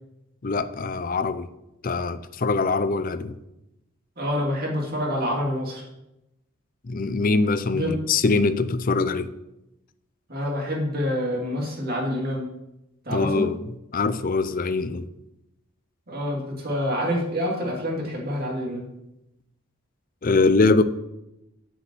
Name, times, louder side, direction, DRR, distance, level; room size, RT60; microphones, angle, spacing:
voice 1, 0.4-1.5 1.8-3.4 6.8-9.3 13.1-13.6 13.9-15.1 20.2-20.8, left 3 dB, 40° left, 0.5 m, -23 dB
voice 2, 4.2-5.8 7.7-7.9 10.3-12.5 13.0-13.5 16.1-18.9, equal, 40° right, 2.5 m, -27 dB
8.4 x 5.4 x 7.7 m
head